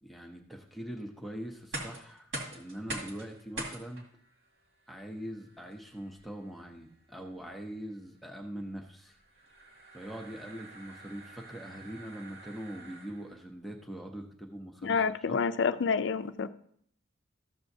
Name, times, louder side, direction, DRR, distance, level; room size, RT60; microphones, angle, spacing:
voice 1, 0.0-4.1 4.9-9.2 9.9-15.5, right 1 dB, ahead, 1 dB, 0.6 m, -42 dB
sound 1, 1.5-13.4, right 1 dB, 65° right, 2.1 m, -45 dB
voice 2, 14.8-16.5, left 5 dB, 60° left, 12 dB, 0.4 m, -28 dB
13.5 x 6.9 x 2.7 m, 0.65 s
head